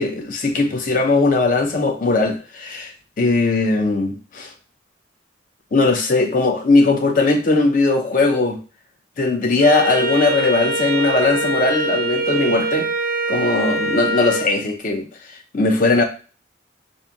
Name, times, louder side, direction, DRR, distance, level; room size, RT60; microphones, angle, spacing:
voice 1, 0.0-4.5 5.7-8.6 9.2-12.9 13.3-15.1 15.5-16.0, left 3 dB, 45° left, 0.5 m, -19 dB
Wind instrument woodwind instrument, 9.6-14.5, right 2 dB, 50° right, 0.4 m, -23 dB
2.8 x 2.5 x 2.5 m
head